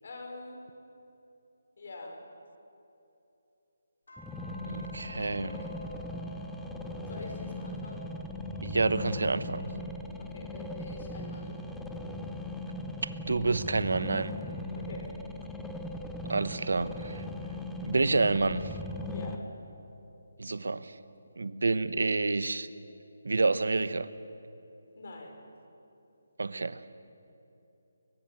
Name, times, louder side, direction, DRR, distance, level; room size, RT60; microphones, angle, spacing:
voice 1, 0.0-0.6 1.8-2.2 7.1-8.1 10.2-11.6 14.7-15.1 19.1-19.4 24.9-25.4, left 2 dB, 55° left, 2 dB, 5.4 m, -44 dB
sound 1, 4.1-10.8 11.2-14.1 14.7-17.5 18.2-20.7 22.0-23.1, left 2 dB, 80° left, 6.3 m, -55 dB
sound 2, 4.2-19.4, left 1 dB, 5° left, 0.9 m, -39 dB
voice 2, 4.6-5.6 8.6-9.6 13.2-14.3 16.3-17.2 17.8-18.7 20.4-21.0 21.4-22.7 23.2-24.1 26.4-26.8, right 3 dB, 80° right, 14 dB, 1.0 m, -28 dB
22.5 x 20.0 x 7.4 m, 2.9 s
hypercardioid pair, 170°, 0 cm